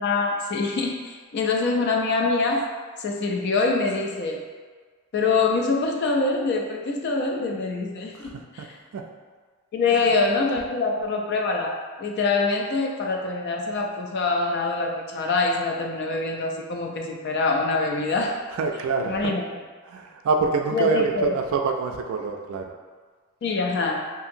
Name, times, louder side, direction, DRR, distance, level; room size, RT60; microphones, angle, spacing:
voice 1, 0.0-2.7 3.0-4.4 5.1-8.7 9.7-18.4 19.0-19.4 20.7-21.3 23.4-24.1, left 3 dB, 50° left, 1 dB, 0.3 m, -24 dB
voice 2, 8.1-8.7 8.9-9.0 9.9-10.1 18.5-19.3 19.9-22.7, right 4 dB, 70° right, 3 dB, 0.3 m, -26 dB
2.8 x 2.7 x 2.5 m, 1.5 s
head